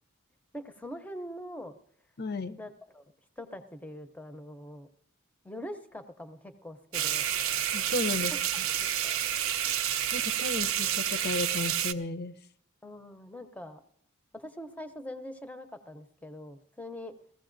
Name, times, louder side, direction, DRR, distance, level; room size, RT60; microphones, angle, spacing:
voice 1, 0.5-1.8 2.6-3.0 3.4-4.9 5.4-7.4 8.8-9.2 12.8-13.8 14.3-17.1, left 1 dB, 5° left, 9 dB, 0.6 m, -43 dB
voice 2, 2.2-2.6 7.7-8.7 10.1-12.3, left 3 dB, 50° left, 13 dB, 0.6 m, -34 dB
sound 1, 6.9-11.9, right 10 dB, 70° right, 0.5 m, -29 dB
21.0 x 15.0 x 2.6 m, 0.71 s
head